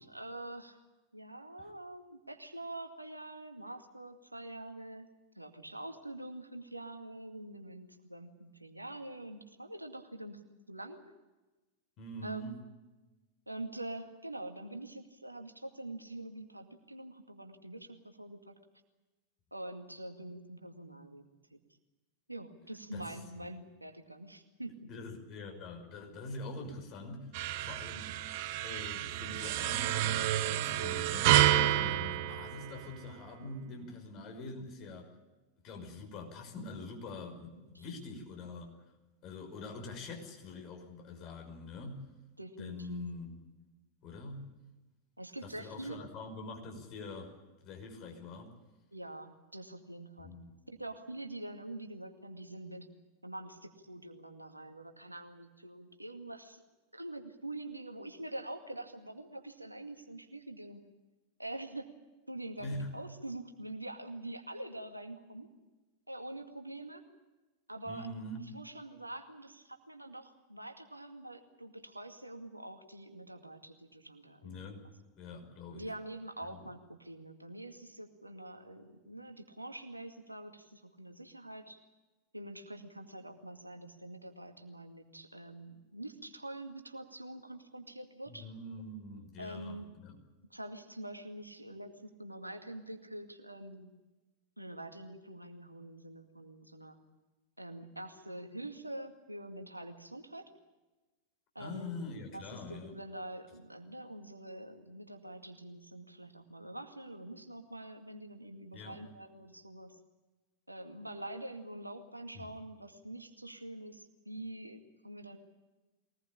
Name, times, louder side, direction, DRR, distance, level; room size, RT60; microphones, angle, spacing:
voice 1, 0.1-0.8 1.1-5.1 5.4-10.4 10.7-11.0 12.2-12.5 13.5-18.6 19.5-21.2 21.5-21.6 22.3-24.9 33.4-33.9 37.6-38.0 42.4-43.1 45.2-46.0 48.9-50.3 50.7-52.9 53.2-56.6 56.9-60.8 61.4-61.9 62.3-65.5 66.1-67.0 67.7-68.1 68.5-74.7 75.7-81.8 82.3-88.5 89.4-89.9 90.5-93.9 94.6-97.0 97.6-100.5 101.6-101.9 102.3-110.0 110.7-115.4, right 1 dB, 85° right, 6 dB, 2.2 m, -45 dB
voice 2, 12.0-12.6 22.9-23.2 24.9-28.2 28.6-35.1 35.6-38.7 39.2-42.1 42.6-43.4 44.0-44.5 45.4-48.5 50.2-50.5 62.6-63.0 67.9-68.4 74.4-74.8 75.2-75.9 76.5-76.6 88.3-90.2 101.6-102.9 108.7-109.0 112.3-112.5, left 2 dB, 40° left, 3 dB, 5.8 m, -44 dB
sound 1, 27.3-33.1, right 13 dB, 45° right, 1.0 m, -30 dB
23.5 x 19.5 x 8.7 m, 1.1 s
figure-of-eight pair, 90°, 0 cm